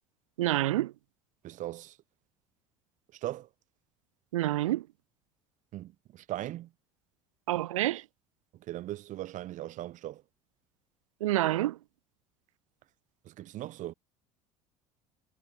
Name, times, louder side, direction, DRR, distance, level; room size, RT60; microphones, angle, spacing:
voice 1, 0.4-0.9 4.3-4.8 7.5-8.0 11.2-11.8, right 15 dB, 85° right, 0.4 m, -27 dB
voice 2, 1.4-2.0 3.2-3.5 5.7-6.7 8.7-10.2 13.2-13.9, right 14 dB, 50° right, 0.8 m, -39 dB
hypercardioid pair, 70°, 16 cm